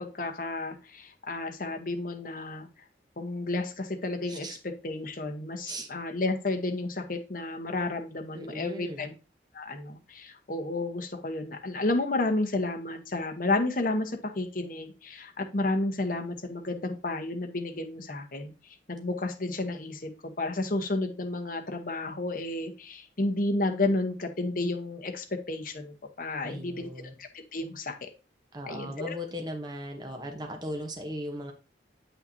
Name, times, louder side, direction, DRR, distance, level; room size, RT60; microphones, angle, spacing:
voice 1, 0.0-2.7 3.2-9.1 9.5-18.5 18.9-26.9 27.2-28.1 28.7-29.2, left 2 dB, 50° left, 5 dB, 1.0 m, -31 dB
voice 2, 8.3-9.1 26.4-27.1 28.5-31.5, equal, 25° right, 3 dB, 0.9 m, -38 dB
8.5 x 5.6 x 2.7 m, 0.31 s
head